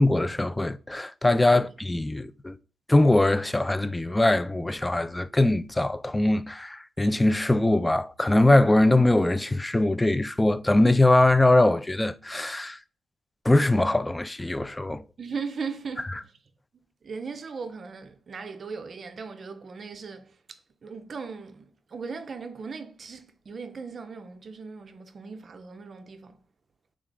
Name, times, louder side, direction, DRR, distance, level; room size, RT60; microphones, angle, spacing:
voice 1, 0.0-2.6 2.9-12.8 13.5-15.0 16.1-16.2, left 2 dB, 15° left, 0.3 m, -22 dB
voice 2, 15.2-16.2 17.0-20.3 20.8-26.3, right 5 dB, 50° right, 0.4 m, -38 dB
3.3 x 2.4 x 3.7 m
hypercardioid pair, 40°, 0 cm